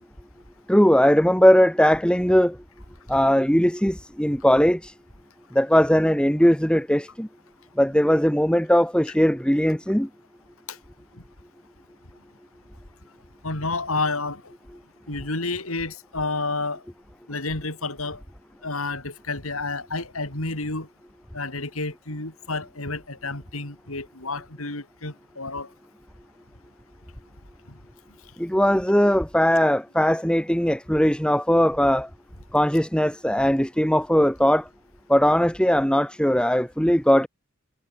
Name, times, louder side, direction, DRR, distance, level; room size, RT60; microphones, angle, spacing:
voice 1, 0.7-2.6 3.1-4.9 5.5-7.3 7.8-10.1 28.4-32.1 32.5-34.7 35.1-37.3, equal, 5° left, 2.4 m, -19 dB
voice 2, 13.4-14.5 15.1-16.8 17.3-18.2 18.6-20.9 21.3-25.7, left 3 dB, 85° left, 5.3 m, -30 dB
head